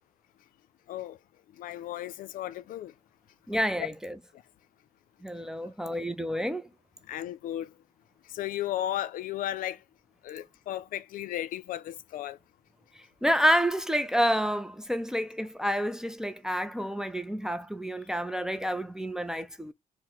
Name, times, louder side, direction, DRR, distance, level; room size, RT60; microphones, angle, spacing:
voice 1, 1.6-2.9 7.1-7.7 8.3-9.8 10.2-12.4, left 12 dB, 75° left, 0.4 m, -34 dB
voice 2, 3.5-4.2 5.2-6.7 13.2-19.7, equal, 5° right, 0.3 m, -29 dB
4.5 x 2.0 x 3.8 m
cardioid pair, 170°, 14 cm